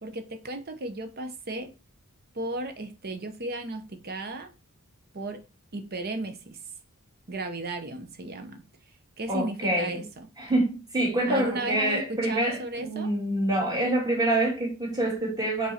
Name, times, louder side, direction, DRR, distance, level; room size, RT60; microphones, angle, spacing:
voice 1, 0.0-1.7 2.3-4.5 5.1-5.4 5.7-6.6 7.3-8.6 9.2-10.3 11.3-13.1, right 2 dB, 45° right, 0.9 m, -34 dB
voice 2, 9.3-9.9 10.4-15.7, right 1 dB, 20° right, 2.0 m, -26 dB
5.3 x 4.2 x 4.3 m
head